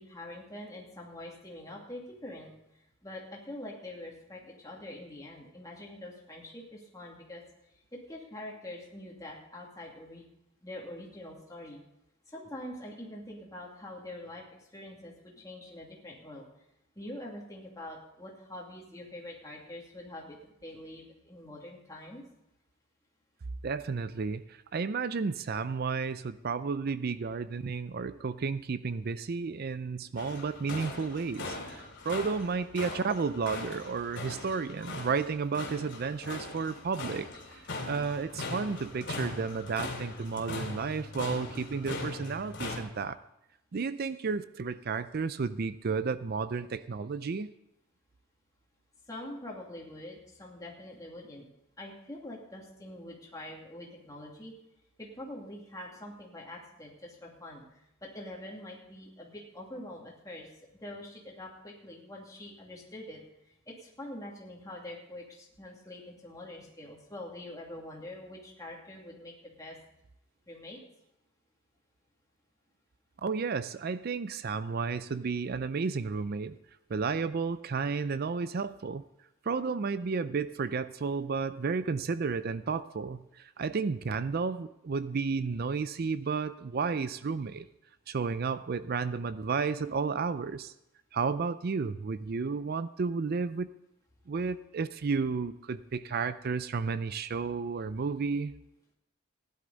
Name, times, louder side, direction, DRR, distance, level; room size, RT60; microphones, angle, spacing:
voice 1, 0.0-7.4 7.9-10.3 10.6-11.8 12.3-16.5 17.0-22.2 49.1-51.5 51.8-54.5 55.0-60.5 60.8-63.2 63.7-69.8 70.5-70.8, left 1 dB, 15° left, -2 dB, 2.4 m, -45 dB
voice 2, 23.6-43.2 43.7-47.5 73.2-76.6 76.9-79.0 79.4-87.7 88.1-90.7 91.1-93.7 94.3-98.5, right 5 dB, 50° right, 14 dB, 0.4 m, -32 dB
sound 1, 30.2-42.8, left 2 dB, 60° left, 2.6 m, -40 dB
16.0 x 11.0 x 4.0 m, 0.84 s
head